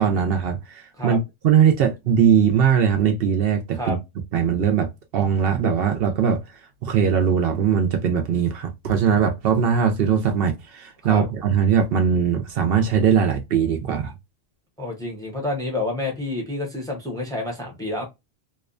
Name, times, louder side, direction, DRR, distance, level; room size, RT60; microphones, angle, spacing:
voice 1, 0.0-4.0 4.3-4.9 5.1-6.4 6.8-14.1, right 7 dB, 65° right, 0.7 m, -20 dB
voice 2, 14.8-18.0, left 2 dB, 5° left, 0.6 m, -29 dB
2.7 x 2.1 x 2.3 m
omnidirectional pair, 1.1 m